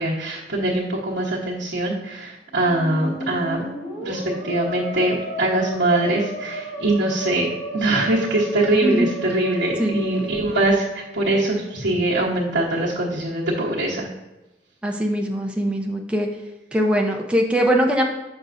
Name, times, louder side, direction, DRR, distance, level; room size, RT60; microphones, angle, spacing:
voice 1, 0.0-3.6 4.0-7.5 7.7-14.1, right 2 dB, 75° right, -9 dB, 1.0 m, -22 dB
Musical instrument, 2.5-11.3, right 1 dB, 55° left, 1.6 m, -33 dB
voice 2, 14.8-16.3 16.7-18.0, equal, 5° right, 1 dB, 0.6 m, -21 dB
6.8 x 6.1 x 2.6 m, 1.0 s
head